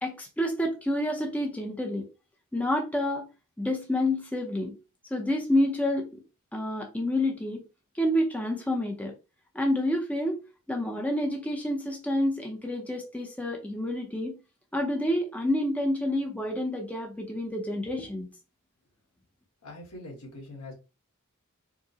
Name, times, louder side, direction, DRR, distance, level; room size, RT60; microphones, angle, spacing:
voice 1, 0.0-2.1 2.5-3.2 3.6-4.7 5.1-6.2 6.5-7.6 8.0-9.1 9.5-10.4 10.7-14.4 14.7-18.3, left 1 dB, 5° left, 0.6 m, -28 dB
voice 2, 19.6-20.7, left 2 dB, 80° left, 1.6 m, -43 dB
4.6 x 2.1 x 2.8 m
head